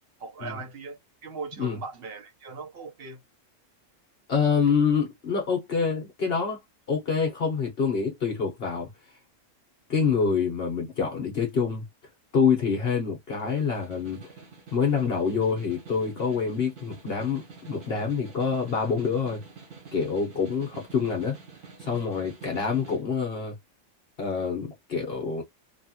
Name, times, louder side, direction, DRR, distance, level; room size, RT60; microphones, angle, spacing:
voice 1, 0.2-3.2, right 4 dB, 55° right, 1.0 m, -39 dB
voice 2, 4.3-6.6 6.9-8.9 9.9-11.8 12.3-14.3 14.7-19.4 19.9-21.3 21.8-23.5 24.2-25.4, left 5 dB, 50° left, 1.2 m, -26 dB
Snare drum, 13.3-23.0, right 5 dB, 75° right, 1.6 m, -48 dB
3.1 x 2.4 x 2.8 m
omnidirectional pair, 1.3 m